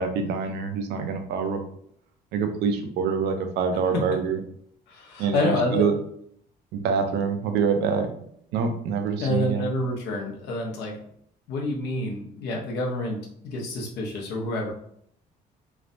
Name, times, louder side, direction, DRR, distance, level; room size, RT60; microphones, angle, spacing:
voice 1, 0.0-1.6 2.3-4.4 5.2-5.9 6.7-8.1 8.5-9.7, right 6 dB, 80° right, 6 dB, 0.5 m, -25 dB
voice 2, 4.9-5.9 9.2-11.0 11.5-13.2 13.4-14.7, left 1 dB, 75° left, -1 dB, 0.9 m, -28 dB
3.2 x 2.1 x 2.5 m, 0.66 s
cardioid pair, 110°, 17 cm